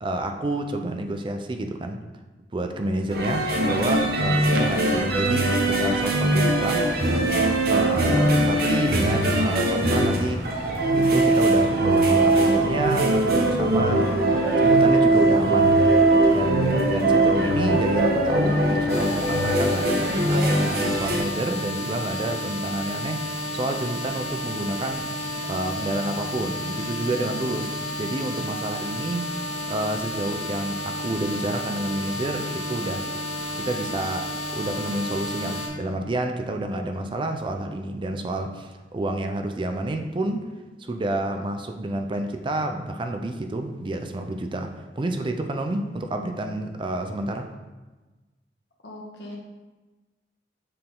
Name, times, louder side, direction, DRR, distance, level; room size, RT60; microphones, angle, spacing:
voice 1, 0.0-2.0 2.5-6.8 7.7-10.4 10.9-23.2 23.5-25.0 25.5-27.7 28.0-29.3 29.7-33.0 33.6-34.3 34.5-40.4 40.8-47.5, right 1 dB, 30° right, 5 dB, 0.4 m, -29 dB
sound 1, 3.1-21.2, right 2 dB, 60° right, 0.8 m, -21 dB
sound 2, 18.9-35.7, left 1 dB, 35° left, 1.1 m, -31 dB
voice 2, 48.8-49.4, left 2 dB, 75° left, -2 dB, 1.3 m, -40 dB
6.6 x 3.8 x 3.7 m, 1.2 s
head